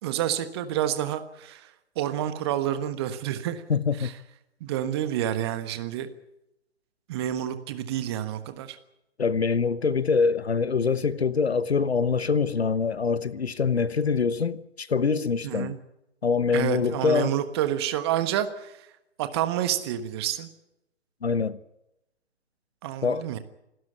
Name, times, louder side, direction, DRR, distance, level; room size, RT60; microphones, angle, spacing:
voice 1, 0.0-3.6 4.0-4.1 4.6-6.1 7.1-8.8 15.4-15.8 16.5-18.9 19.2-20.5 22.8-23.4, right 11 dB, 20° right, 1.3 m, -29 dB
voice 2, 3.7-4.1 9.2-15.7 16.2-17.3 21.2-21.6 23.0-23.2, left 5 dB, 60° left, 1.1 m, -24 dB
27.5 x 12.5 x 9.8 m
figure-of-eight pair, 135°, 35 cm